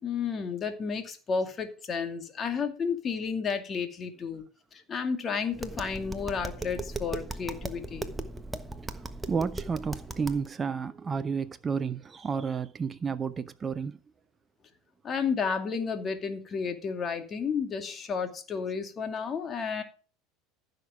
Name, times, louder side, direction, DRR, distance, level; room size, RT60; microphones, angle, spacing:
voice 1, 0.0-4.4 4.7-8.1 15.0-19.8, left 6 dB, 30° left, 2.5 m, -32 dB
Tap, 5.5-10.5, right 2 dB, 10° right, 1.3 m, -38 dB
voice 2, 9.3-14.0, right 5 dB, 25° right, 0.6 m, -31 dB
15.0 x 6.6 x 4.9 m
figure-of-eight pair, 70°, 0 cm